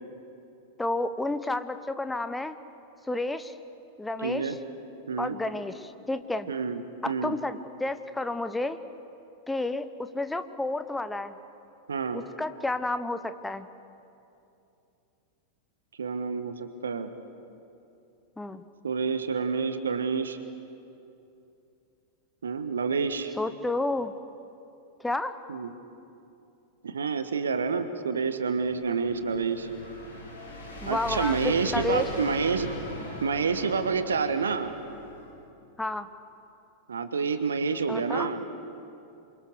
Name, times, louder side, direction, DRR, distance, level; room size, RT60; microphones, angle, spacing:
voice 1, 0.8-2.6 3.1-3.6 4.0-4.5 5.2-6.5 7.0-8.8 9.5-11.3 12.1-13.7 18.4-18.6 23.4-24.1 25.0-25.3 30.8-32.1 35.8-36.1 37.9-38.3, left 2 dB, 5° left, 10 dB, 1.1 m, -31 dB
voice 2, 4.2-4.6 5.1-5.4 6.5-7.4 11.9-12.2 16.0-17.1 18.8-20.4 22.4-23.3 25.5-25.7 26.8-29.7 30.9-32.7 33.2-34.8 36.9-38.4, right 5 dB, 70° right, 10 dB, 1.4 m, -28 dB
sound 1, 28.6-35.3, left 2 dB, 65° left, 6.3 m, -40 dB
27.5 x 23.5 x 6.6 m, 2.8 s
figure-of-eight pair, 90°, 0 cm